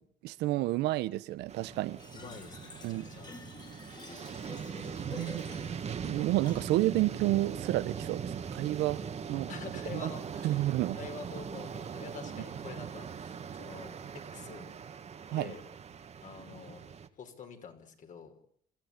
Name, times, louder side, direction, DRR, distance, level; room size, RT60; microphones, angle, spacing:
voice 1, 0.0-2.0 2.8-3.1 5.1-5.4 6.0-9.0 9.3-9.5 9.9-10.1 10.4-11.0 15.3-15.5, right 16 dB, 85° right, 1.1 m, -30 dB
sound 1, 1.5-17.1, right 7 dB, 40° right, 1.9 m, -41 dB
Fill (with liquid), 2.0-7.0, left 3 dB, 25° left, 3.6 m, -50 dB
voice 2, 2.1-3.3 9.5-10.7 11.0-14.6 15.3-15.6 16.2-16.8 17.2-18.4, left 6 dB, 50° left, 5.4 m, -47 dB
27.5 x 15.0 x 9.9 m
cardioid pair, 110°, 17 cm